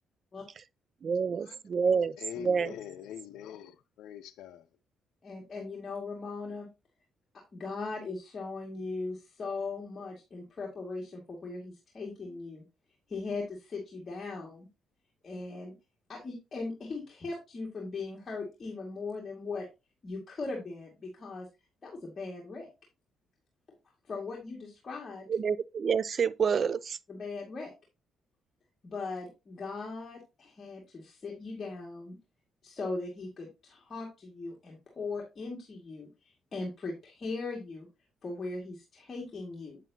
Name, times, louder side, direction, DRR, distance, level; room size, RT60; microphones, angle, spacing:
voice 1, 1.0-2.1 2.4-2.7 25.3-27.0, right 6 dB, 50° right, 0.4 m, -28 dB
voice 2, 2.2-4.7, left 10 dB, 85° left, 0.6 m, -44 dB
voice 3, 5.2-6.7 7.5-12.6 13.1-14.7 15.2-15.7 16.1-19.7 20.0-21.5 21.8-22.7 24.1-25.3 27.1-27.7 28.8-32.2 32.6-37.9 38.2-39.8, left 3 dB, 40° left, 2.0 m, -39 dB
8.0 x 7.4 x 2.8 m
cardioid pair, 90°, 0 cm